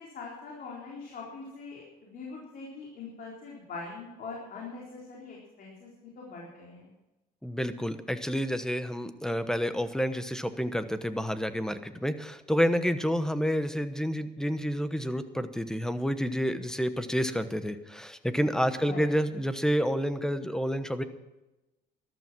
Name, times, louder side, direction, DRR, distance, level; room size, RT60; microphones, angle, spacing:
voice 1, 0.0-6.9 18.8-19.0, left 4 dB, 55° left, -3 dB, 4.0 m, -42 dB
voice 2, 7.4-21.0, equal, 5° left, 11 dB, 1.1 m, -29 dB
14.0 x 12.5 x 6.1 m, 1.0 s
cardioid pair, 110°, 17 cm